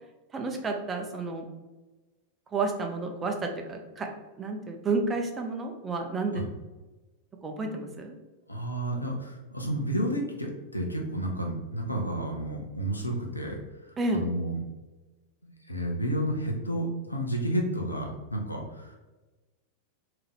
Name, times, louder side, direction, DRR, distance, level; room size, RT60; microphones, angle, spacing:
voice 1, 0.3-1.4 2.5-4.1 4.4-6.4 7.4-8.1 14.0-14.3, right 3 dB, 20° right, 3 dB, 0.5 m, -31 dB
voice 2, 8.5-14.6 15.7-19.0, right 1 dB, 85° left, 1 dB, 0.6 m, -31 dB
3.6 x 2.8 x 3.5 m, 1.2 s
figure-of-eight pair, 90°, 0 cm